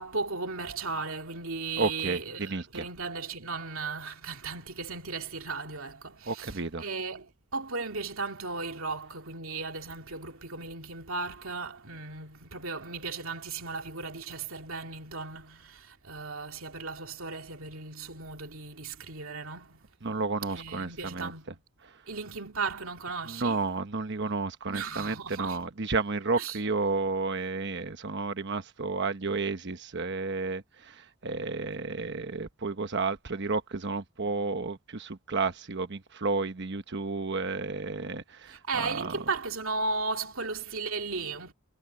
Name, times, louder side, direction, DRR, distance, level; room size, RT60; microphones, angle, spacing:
voice 1, 0.0-19.8 20.5-21.6 22.1-23.6 24.6-25.6 26.4-26.6 38.5-41.5, right 4 dB, 70° right, 2.5 m, -36 dB
voice 2, 1.8-2.8 6.3-6.8 20.0-21.3 23.3-39.2, right 3 dB, 55° right, 1.1 m, -32 dB
head